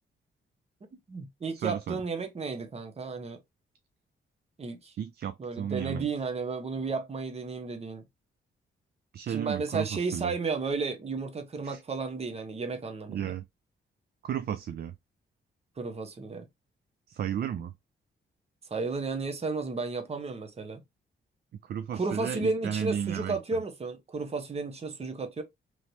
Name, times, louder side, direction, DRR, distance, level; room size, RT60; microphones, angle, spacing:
voice 1, 1.1-3.4 4.6-4.9 5.4-8.0 9.3-13.3 15.8-16.5 18.7-20.8 21.9-25.4, right 4 dB, 30° right, 0.9 m, -33 dB
voice 2, 1.6-2.0 5.0-6.1 9.1-10.3 11.6-11.8 13.1-13.4 14.2-14.9 17.1-17.7 21.6-23.4, right 9 dB, 55° right, 0.4 m, -33 dB
3.2 x 3.1 x 2.7 m
cardioid pair, 85°, 20 cm